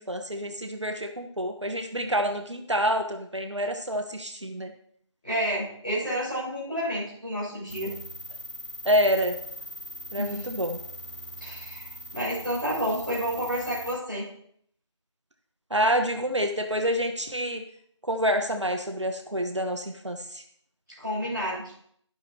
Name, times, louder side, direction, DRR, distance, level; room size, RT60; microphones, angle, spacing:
voice 1, 0.0-4.7 8.8-9.4 10.1-10.8 15.7-17.6 18.0-20.4, equal, 70° right, 5 dB, 1.4 m, -27 dB
voice 2, 5.2-7.9 10.2-10.4 11.4-14.2 21.0-21.6, equal, 5° left, -20 dB, 3.9 m, -30 dB
sound 1, 7.7-13.9, equal, 70° left, 3.0 m, -41 dB
11.0 x 11.0 x 3.0 m, 0.65 s
figure-of-eight pair, 175°, 16 cm